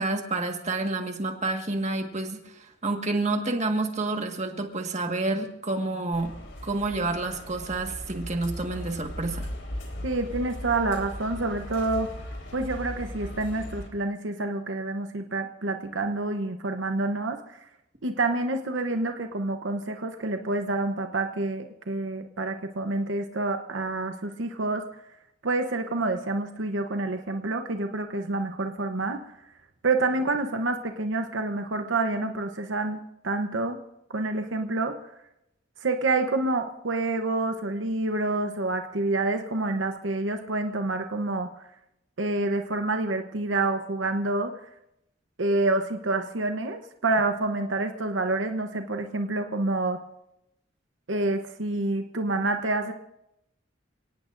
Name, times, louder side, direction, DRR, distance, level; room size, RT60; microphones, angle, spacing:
voice 1, 0.0-6.3 6.6-9.5, right 2 dB, 35° right, 4 dB, 1.6 m, -29 dB
sound 1, 6.1-13.9, equal, 85° left, 3.8 m, -38 dB
voice 2, 10.0-12.1 12.5-17.6 18.0-24.8 25.4-29.2 29.8-33.8 34.1-34.9 35.8-41.5 42.2-44.5 45.4-50.0 51.1-52.9, right 2 dB, 75° right, 5 dB, 0.9 m, -28 dB
29.0 x 18.0 x 2.6 m, 0.85 s
head